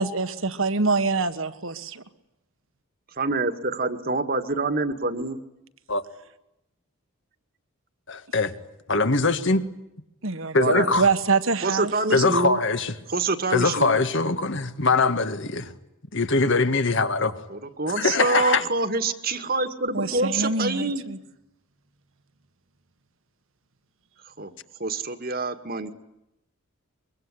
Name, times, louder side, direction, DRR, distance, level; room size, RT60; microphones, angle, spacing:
voice 1, 0.0-2.0 10.2-11.9 12.2-12.4 19.9-21.2, right 4 dB, 65° right, 1.7 m, -25 dB
voice 2, 3.2-5.4 10.6-11.0 11.6-12.6 13.1-14.0 17.5-21.0 24.4-24.5 24.8-25.9, right 3 dB, 45° right, 1.9 m, -26 dB
voice 3, 8.1-8.5 8.9-9.6 10.5-11.1 12.1-12.9 13.5-15.7 16.1-17.3 18.0-18.6, left 3 dB, 55° left, 1.8 m, -22 dB
24.0 x 23.0 x 10.0 m
head